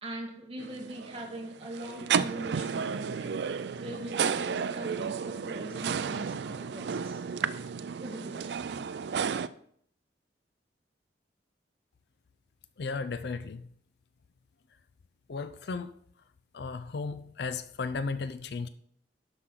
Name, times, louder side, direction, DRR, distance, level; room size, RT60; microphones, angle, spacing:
voice 1, 0.0-3.5 3.8-7.2 8.0-8.5, right 1 dB, 30° right, 1.7 m, -41 dB
sound 1, 0.6-9.5, right 6 dB, 65° right, 0.4 m, -32 dB
voice 2, 12.8-13.7 15.3-15.9 16.5-18.7, left 4 dB, 65° left, 0.4 m, -35 dB
12.5 x 6.0 x 3.8 m
head